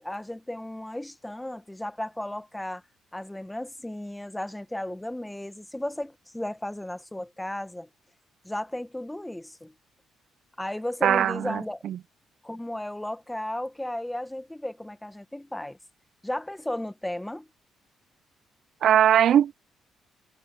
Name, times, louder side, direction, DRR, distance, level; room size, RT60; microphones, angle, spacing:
voice 1, 0.0-2.8 3.1-7.9 8.4-9.7 10.6-11.8 12.4-15.8 16.2-17.5, left 1 dB, 10° left, 1.4 m, -34 dB
voice 2, 11.0-12.0 18.8-19.6, right 10 dB, 70° right, 0.5 m, -21 dB
supercardioid pair, 55°, 0 cm